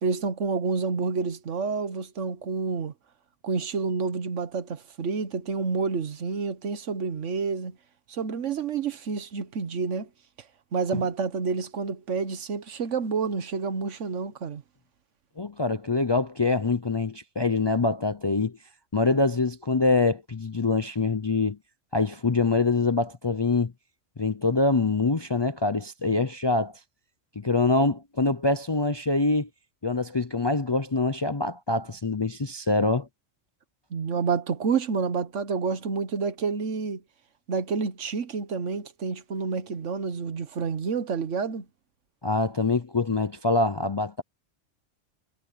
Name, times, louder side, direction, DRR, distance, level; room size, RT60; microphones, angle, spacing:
voice 1, 0.0-2.9 3.4-7.8 8.1-10.1 10.7-14.6 33.9-37.0 37.5-41.7, right 5 dB, 75° right, 1.5 m, -29 dB
voice 2, 15.4-18.5 18.9-21.6 21.9-23.7 24.2-26.8 27.4-29.5 29.8-33.1 42.2-44.2, left 3 dB, 30° left, 0.5 m, -25 dB
omnidirectional pair, 1.3 m